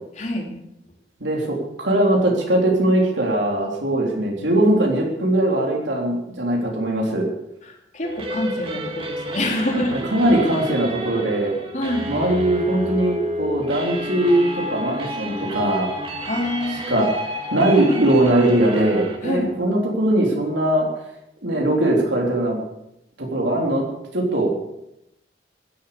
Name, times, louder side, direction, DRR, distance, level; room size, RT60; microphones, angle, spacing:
voice 1, 0.2-0.5 7.7-10.5 11.7-12.1 16.3-17.1 19.2-19.6, left 1 dB, 40° left, 0 dB, 3.5 m, -26 dB
voice 2, 1.2-7.3 10.1-11.5 12.1-15.9 16.9-17.1 17.5-20.9 21.4-22.6 23.2-23.8 24.1-24.7, right 1 dB, 85° right, -1 dB, 3.7 m, -20 dB
sound 1, 8.0-19.2, equal, 30° right, 2.6 m, -30 dB
16.0 x 11.0 x 7.0 m, 0.83 s
head